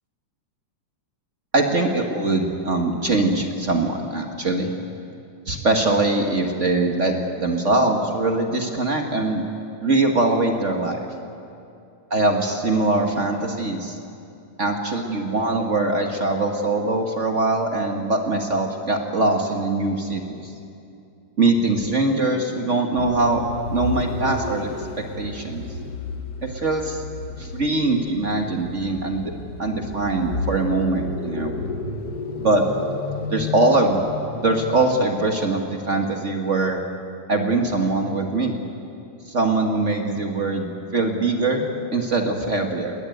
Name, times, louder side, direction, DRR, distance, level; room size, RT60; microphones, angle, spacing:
voice 1, 1.5-4.7 5.5-9.4 9.8-11.0 12.1-14.0 14.6-20.4 21.4-23.4 23.7-24.7 25.0-25.6 26.4-27.0 27.4-29.3 29.6-31.5 32.4-32.7 33.3-34.0 34.4-36.8 37.3-38.6 39.3-42.9, right 2 dB, 45° right, 3 dB, 0.9 m, -22 dB
sound 1, 22.9-35.1, left 3 dB, 80° left, 0.8 m, -32 dB
21.0 x 20.0 x 9.2 m, 2.6 s
omnidirectional pair, 3.7 m